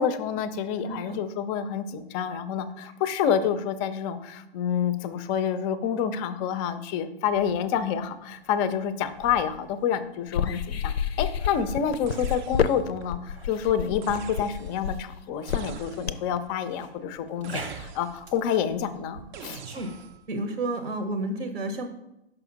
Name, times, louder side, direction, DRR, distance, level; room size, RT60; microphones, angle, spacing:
voice 1, 0.0-19.6, left 8 dB, 25° left, 12 dB, 0.4 m, -28 dB
voice 2, 0.9-1.2 19.7-19.9 20.3-21.9, right 2 dB, 70° right, 7 dB, 0.8 m, -31 dB
sound 1, 7.3-20.2, right 2 dB, 90° right, 1.2 m, -47 dB
sound 2, 10.3-16.4, left 8 dB, 80° left, 0.5 m, -29 dB
sound 3, 12.1-13.0 14.0-14.9 15.5-16.3 17.4-18.4 19.3-20.2, right 6 dB, 50° right, 0.5 m, -43 dB
5.8 x 4.8 x 3.9 m, 0.89 s
figure-of-eight pair, 105°, 30 cm